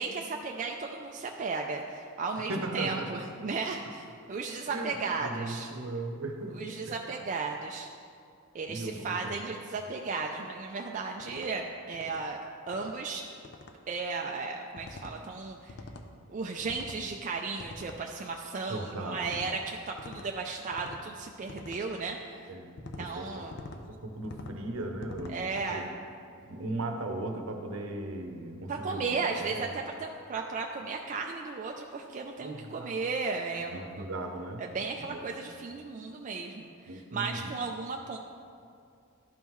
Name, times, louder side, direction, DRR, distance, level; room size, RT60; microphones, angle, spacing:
voice 1, 0.0-5.7 6.5-7.9 8.5-12.4 12.7-13.2 13.9-15.8 16.3-22.5 23.0-23.6 25.3-25.9 28.7-33.9 34.6-38.2, right 4 dB, 35° right, 1 dB, 0.3 m, -35 dB
voice 2, 2.5-3.2 4.7-6.6 6.8-7.0 8.7-9.4 18.7-19.4 22.5-23.5 23.9-25.9 26.5-29.0 29.4-29.7 32.4-33.0 33.7-34.6 35.0-35.4 36.9-37.6, right 2 dB, 65° right, 4 dB, 0.8 m, -37 dB
sound 1, 11.2-11.5 11.9-12.2 12.7-13.0 13.4-13.7 14.8-15.2 15.7-16.1 16.6-17.0 17.6-18.0 19.2-19.6 20.0-20.3 20.7-21.0 21.5-21.8 22.8-23.1 23.5-23.8 24.2-24.6 25.0-25.4, left 3 dB, 50° left, 0.5 m, -45 dB
12.0 x 5.4 x 3.1 m, 2.4 s
head